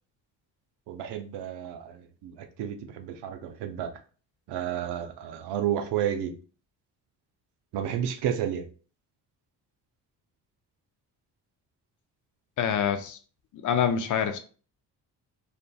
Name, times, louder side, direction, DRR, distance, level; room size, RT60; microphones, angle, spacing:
voice 1, 0.9-3.9 4.5-6.3 7.7-8.6, right 9 dB, 60° right, 0.6 m, -31 dB
voice 2, 12.6-13.2 13.6-14.4, left 8 dB, 45° left, 0.4 m, -26 dB
2.4 x 2.4 x 2.3 m
hypercardioid pair, 45°, 47 cm